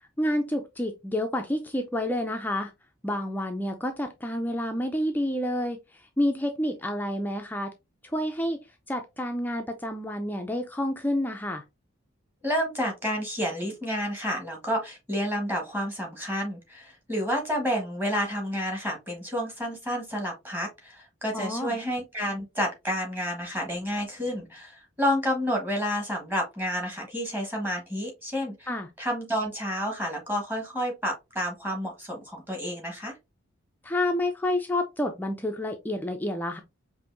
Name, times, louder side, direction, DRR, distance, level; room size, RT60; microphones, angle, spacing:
voice 1, 0.2-2.7 3.0-5.8 6.2-7.7 8.1-8.6 8.9-11.6 21.3-21.8 28.7-28.9 33.8-36.6, left 1 dB, 10° left, 0.3 m, -29 dB
voice 2, 12.4-28.7 29.0-33.2, equal, 10° right, 1.2 m, -30 dB
5.2 x 2.6 x 2.5 m
head